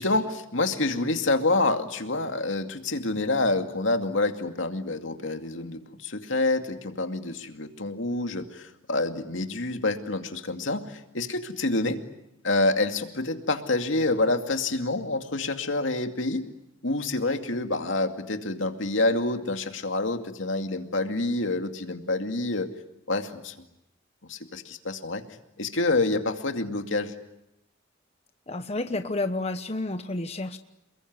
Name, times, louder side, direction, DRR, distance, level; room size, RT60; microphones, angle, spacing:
voice 1, 0.0-12.0 12.4-16.5 16.8-22.7 23.1-23.5 24.3-25.2 25.6-27.1, left 2 dB, 80° left, 6 dB, 2.4 m, -27 dB
voice 2, 28.5-30.6, left 2 dB, 35° left, 8 dB, 1.1 m, -30 dB
29.0 x 21.5 x 9.5 m, 0.87 s
head